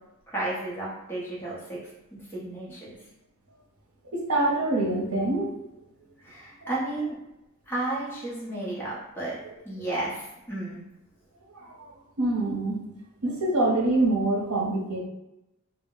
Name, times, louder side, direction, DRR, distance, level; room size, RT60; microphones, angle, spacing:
voice 1, 0.3-1.8 2.1-2.9 6.2-7.1 7.7-9.4 9.6-10.8, right 2 dB, 10° left, -7 dB, 0.7 m, -32 dB
voice 2, 4.1-5.5 11.5-11.7 12.2-12.8 13.2-15.0, right 2 dB, 85° right, -2 dB, 0.7 m, -25 dB
2.0 x 2.0 x 3.7 m, 0.90 s
head